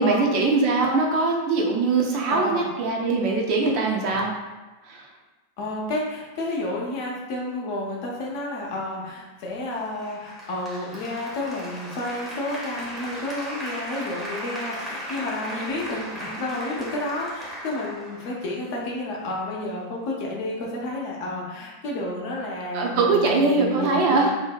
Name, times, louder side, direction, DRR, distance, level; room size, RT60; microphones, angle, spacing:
voice 1, 0.0-4.3 4.9-5.1 22.7-24.4, right 3 dB, 45° right, 0 dB, 0.4 m, -22 dB
voice 2, 2.3-2.7 5.6-24.3, left 2 dB, 50° left, -2 dB, 0.6 m, -30 dB
Applause, 10.0-19.0, equal, ahead, 0.7 m, -37 dB
2.6 x 2.0 x 2.3 m, 1.2 s
figure-of-eight pair, 90°, 0 cm